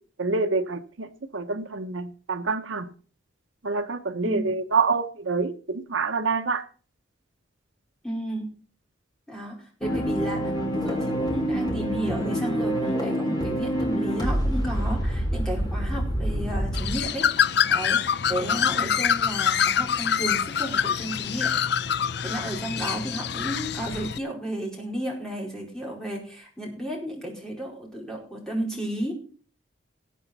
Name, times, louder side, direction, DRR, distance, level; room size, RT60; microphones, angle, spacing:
voice 1, 0.2-1.1 1.3-2.9 3.6-6.6, right 4 dB, 80° right, 9 dB, 1.0 m, -26 dB
voice 2, 8.0-8.5 9.3-17.3 17.7-21.6 22.2-29.1, right 1 dB, 5° left, -2 dB, 4.6 m, -33 dB
sound 1, 9.8-17.0, equal, 20° left, 3.0 m, -27 dB
Bird, 16.7-24.2, left 8 dB, 55° left, 0.5 m, -25 dB
19.5 x 8.1 x 4.2 m, 0.41 s
head